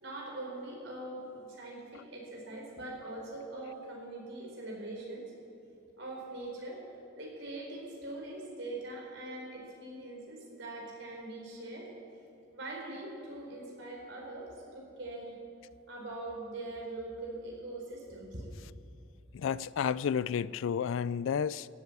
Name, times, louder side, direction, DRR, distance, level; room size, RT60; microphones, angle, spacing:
voice 1, 0.0-5.3 6.0-6.8 7.2-11.9 12.5-15.3 15.9-18.5, right 2 dB, 70° right, -2 dB, 4.4 m, -42 dB
voice 2, 19.3-21.7, left 7 dB, 75° left, 20 dB, 0.3 m, -31 dB
15.5 x 8.3 x 8.4 m, 2.6 s
head